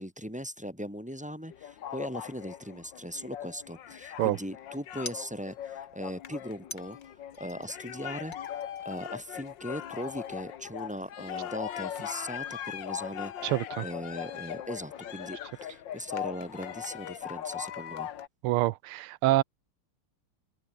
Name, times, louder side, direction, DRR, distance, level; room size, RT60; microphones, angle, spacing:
voice 1, 0.0-7.0 7.4-13.5 13.8-18.1, equal, 5° right, 5.6 m, -39 dB
sound 1, 1.5-18.3, left 10 dB, 60° left, 1.7 m, -40 dB
sound 2, 5.1-5.8 6.7-8.0 8.3-9.5 9.8-10.4 10.8-12.0, left 2 dB, 45° left, 7.8 m, -49 dB
voice 2, 13.4-13.8 18.4-19.4, right 17 dB, 80° right, 1.5 m, -26 dB
open air
omnidirectional pair, 2.4 m